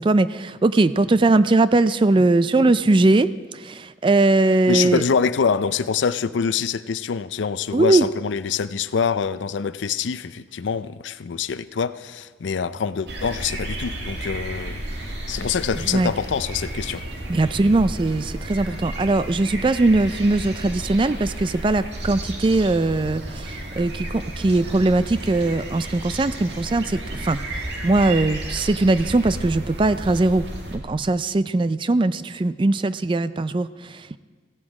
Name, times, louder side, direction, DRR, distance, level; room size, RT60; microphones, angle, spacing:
voice 1, 0.0-5.0 7.7-8.1 15.9-16.1 17.3-34.2, right 2 dB, 25° right, 14 dB, 0.3 m, -20 dB
voice 2, 4.7-17.0, left 6 dB, 80° left, 15 dB, 0.5 m, -25 dB
sound 1, 13.1-30.8, right 1 dB, 65° right, 2.1 m, -32 dB
16.0 x 13.5 x 4.9 m, 1.5 s
head